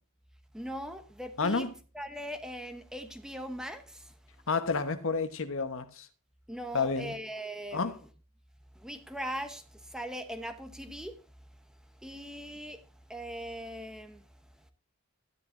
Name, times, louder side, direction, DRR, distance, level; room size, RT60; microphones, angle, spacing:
voice 1, 0.5-1.7 1.9-4.1 6.5-8.0 8.8-9.6 9.9-11.2 12.0-12.8 13.1-14.2, equal, 5° right, 0.9 m, -40 dB
voice 2, 1.4-1.7 4.5-6.1 6.7-7.1 7.7-7.9, left 4 dB, 60° left, 1.1 m, -30 dB
13.0 x 10.0 x 2.6 m
head